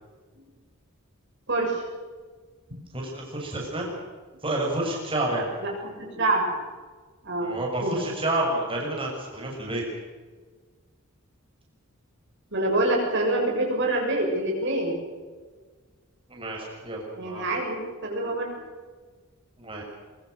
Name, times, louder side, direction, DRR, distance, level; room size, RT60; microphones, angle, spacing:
voice 1, 1.5-1.8 5.6-6.4 7.2-7.9 12.5-15.0 17.2-18.5, right 2 dB, 55° right, 0 dB, 7.0 m, -26 dB
voice 2, 2.9-3.9 4.4-5.5 7.4-9.8 16.3-17.5 19.6-19.8, right 1 dB, 25° right, -2 dB, 6.7 m, -29 dB
23.5 x 23.5 x 6.6 m, 1.4 s
head